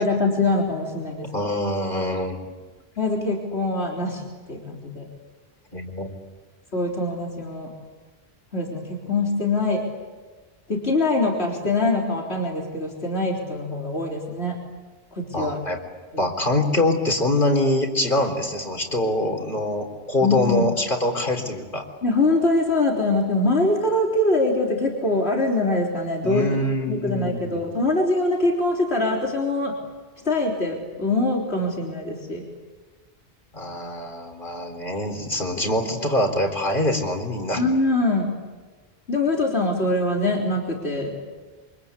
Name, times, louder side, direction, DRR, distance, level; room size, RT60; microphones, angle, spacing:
voice 1, 0.0-1.3 3.0-4.2 4.5-5.1 6.7-7.7 8.5-9.8 10.7-14.6 15.1-15.6 16.1-16.2 20.2-20.7 22.0-26.5 26.9-29.7 30.2-32.4 37.5-38.3 39.1-41.1, left 2 dB, 90° left, -2 dB, 4.0 m, -23 dB
voice 2, 1.3-2.5 5.7-6.1 15.3-15.8 16.2-21.8 26.2-27.6 33.5-37.6, left 1 dB, 55° left, 4 dB, 4.1 m, -24 dB
28.0 x 25.5 x 8.4 m, 1.3 s
omnidirectional pair, 1.0 m